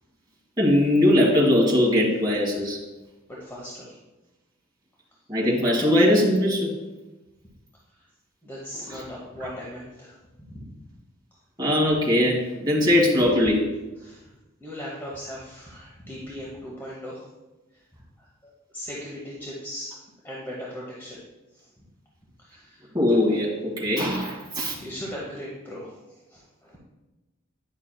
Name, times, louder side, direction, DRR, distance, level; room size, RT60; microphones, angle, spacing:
voice 1, 0.6-2.8 5.3-6.7 8.9-9.0 11.6-13.6 22.9-24.8, left 1 dB, 20° right, -4 dB, 1.5 m, -21 dB
voice 2, 3.3-4.0 8.0-8.1 8.4-10.7 14.0-14.3 14.6-17.3 18.2-18.3 18.7-21.2 21.5-21.7 22.4-22.9 24.5-26.8, equal, 10° left, -5 dB, 0.9 m, -38 dB
9.2 x 5.6 x 2.2 m, 1.1 s
head